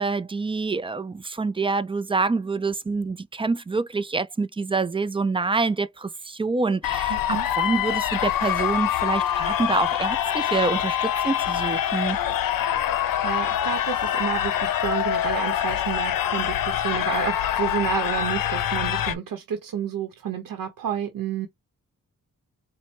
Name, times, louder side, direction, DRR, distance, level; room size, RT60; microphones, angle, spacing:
voice 1, 0.0-12.2, right 4 dB, 15° right, 0.3 m, -26 dB
sound 1, 6.8-19.1, left 10 dB, 85° left, 0.6 m, -25 dB
voice 2, 7.1-7.5 13.2-21.5, right 9 dB, 85° right, 0.8 m, -30 dB
4.3 x 2.1 x 4.2 m
wide cardioid pair, 105°, 33 cm